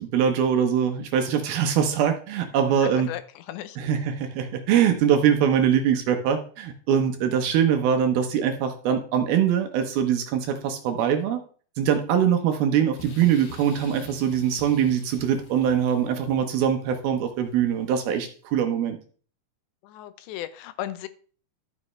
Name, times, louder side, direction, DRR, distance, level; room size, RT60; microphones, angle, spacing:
voice 1, 0.0-3.1 3.8-11.4 11.8-19.0, right 8 dB, 70° right, 6 dB, 2.5 m, -23 dB
voice 2, 2.8-3.8 19.8-21.1, left 13 dB, 85° left, 13 dB, 2.9 m, -36 dB
sound 1, 13.0-18.1, left 4 dB, 65° left, 3.6 m, -48 dB
12.0 x 7.6 x 3.2 m, 0.41 s
omnidirectional pair, 5.0 m